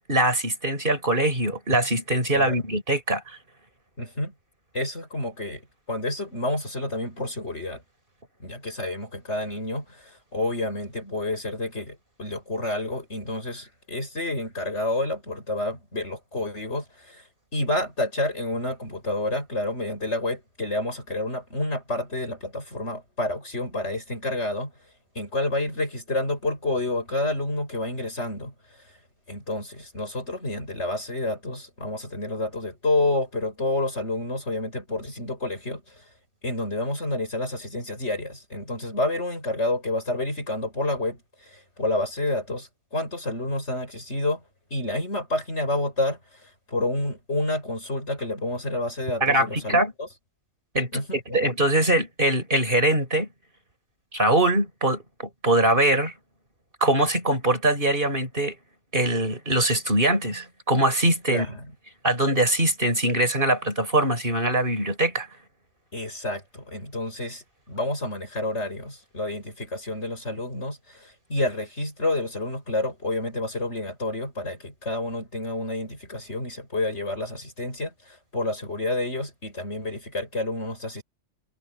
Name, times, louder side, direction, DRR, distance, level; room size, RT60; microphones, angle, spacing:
voice 1, 0.1-3.4 49.2-49.9 50.7-51.0 51.3-53.3 54.1-56.1 56.8-58.5 58.9-61.5 62.0-65.3, right 1 dB, 45° right, 6.3 m, -22 dB
voice 2, 4.0-4.3 4.7-7.8 8.4-17.2 17.5-24.7 25.1-28.5 29.3-36.0 36.4-44.4 44.7-50.1 50.9-51.5 61.3-61.7 65.9-81.0, left 2 dB, 70° left, 8.4 m, -29 dB
omnidirectional pair, 1.2 m